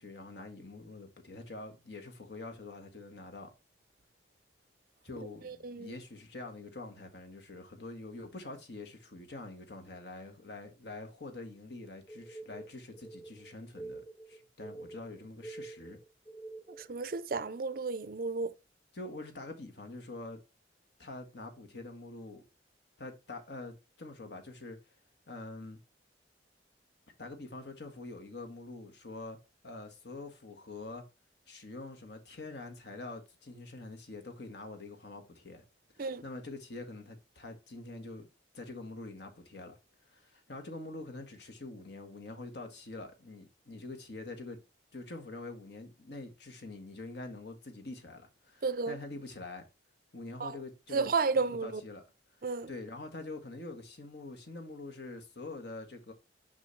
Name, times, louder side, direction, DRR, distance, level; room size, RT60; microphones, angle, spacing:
voice 1, 0.0-3.5 5.0-16.0 18.9-20.4 21.0-22.4 23.0-24.8 25.3-25.8 27.2-29.4 29.6-31.0 31.5-35.6 35.9-38.3 38.5-39.8 40.1-44.6 44.9-49.6 50.1-51.1 51.4-52.0 52.7-56.1, left 2 dB, 65° left, 1.5 m, -45 dB
voice 2, 5.4-5.9 16.7-18.5 36.0-36.2 48.6-49.0 50.4-50.6 50.9-51.8 52.4-52.7, right 4 dB, 50° right, 0.5 m, -32 dB
sound 1, 12.1-16.9, right 2 dB, 25° left, 1.1 m, -47 dB
6.1 x 5.6 x 3.2 m
head